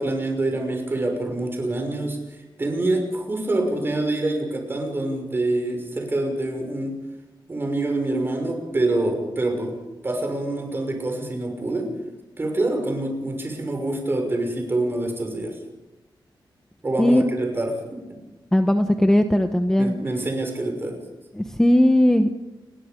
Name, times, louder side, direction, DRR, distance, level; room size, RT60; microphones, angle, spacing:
voice 1, 0.0-2.2 2.6-6.9 7.5-9.8 10.0-11.9 12.4-15.6 16.8-18.0 19.8-21.0, right 2 dB, 25° right, 3 dB, 6.0 m, -26 dB
voice 2, 18.5-20.0 21.3-22.3, left 1 dB, 5° left, 6 dB, 1.1 m, -18 dB
29.5 x 21.0 x 5.3 m, 1.0 s
wide cardioid pair, 145°, 8 cm